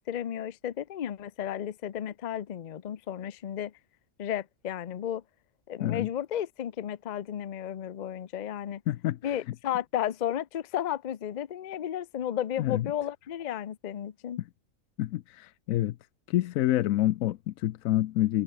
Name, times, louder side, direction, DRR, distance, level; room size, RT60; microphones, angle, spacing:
voice 1, 0.0-3.7 4.2-5.2 5.7-8.8 9.2-14.4, left 10 dB, 50° left, 0.5 m, -33 dB
voice 2, 8.9-9.2 12.6-12.9 15.0-16.0 16.3-18.4, left 14 dB, 85° left, 1.0 m, -27 dB
omnidirectional pair, 1.4 m